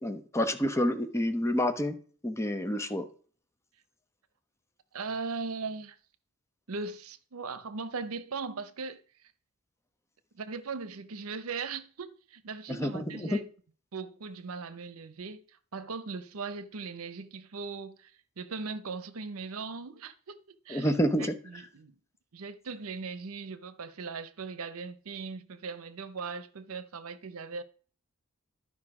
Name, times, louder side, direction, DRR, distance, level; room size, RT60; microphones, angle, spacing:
voice 1, 0.0-2.0 2.2-3.1 12.7-13.4 20.7-21.6, equal, 15° left, 0.8 m, -29 dB
voice 2, 4.9-6.0 6.7-9.0 10.3-13.5 13.9-15.4 15.7-20.9 21.2-22.0 22.3-27.6, right 4 dB, 75° right, 0.7 m, -39 dB
12.0 x 5.3 x 4.8 m
head